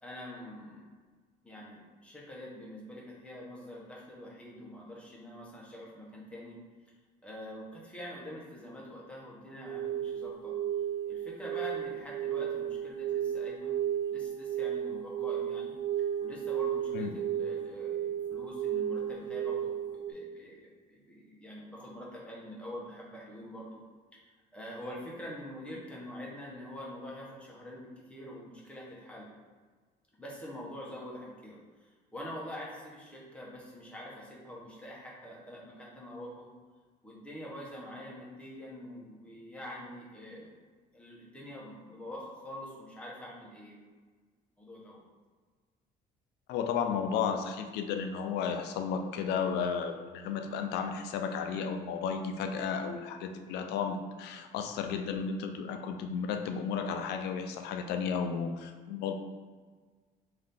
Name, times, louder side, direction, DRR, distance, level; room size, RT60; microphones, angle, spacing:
voice 1, 0.0-0.9 1.4-6.6 7.2-10.6 11.1-13.7 14.1-15.7 16.2-23.8 24.5-29.3 30.2-31.6 32.1-36.5 37.0-40.5 40.9-43.8 44.6-45.0, left 1 dB, 5° left, -5 dB, 1.0 m, -45 dB
sound 1, 9.6-20.1, right 10 dB, 25° right, 0.5 m, -34 dB
voice 2, 46.5-59.1, left 6 dB, 85° left, 6 dB, 0.4 m, -33 dB
3.6 x 2.7 x 3.5 m, 1.5 s
cardioid pair, 110°, 17 cm